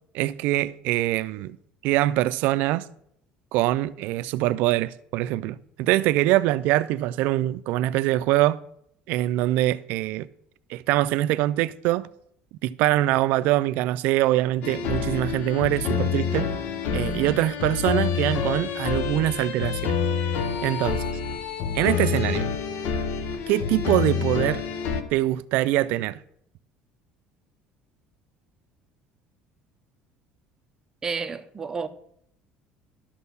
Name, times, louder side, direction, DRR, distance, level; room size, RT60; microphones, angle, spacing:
voice 1, 0.1-1.6 1.8-2.9 3.5-8.6 9.1-10.3 10.7-12.1 12.6-16.5 16.9-20.0 20.6-21.0 21.7-22.5 23.5-24.6 25.1-26.2, right 15 dB, 75° right, 0.4 m, -23 dB
sound 1, 14.6-25.0, left 6 dB, 65° left, 0.9 m, -27 dB
voice 2, 31.0-31.9, right 5 dB, 20° right, 0.7 m, -30 dB
11.5 x 4.4 x 6.9 m
cardioid pair, 130°, 3 cm